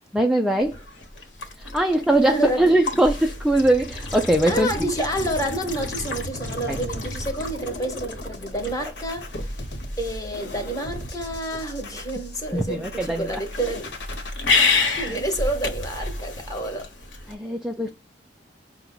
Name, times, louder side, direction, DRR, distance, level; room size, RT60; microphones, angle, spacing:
voice 1, 0.1-0.8 1.6-4.9 6.7-6.8 12.5-13.4 17.3-17.9, right 1 dB, ahead, 0.3 m, -21 dB
sound 1, 0.6-17.3, left 3 dB, 80° left, 1.2 m, -30 dB
voice 2, 2.3-2.7 4.5-9.5 10.0-13.9 15.0-16.9, right 1 dB, 20° left, 1.1 m, -29 dB
sound 2, 6.3-14.3, left 1 dB, 65° left, 1.2 m, -38 dB
5.8 x 2.2 x 3.8 m
head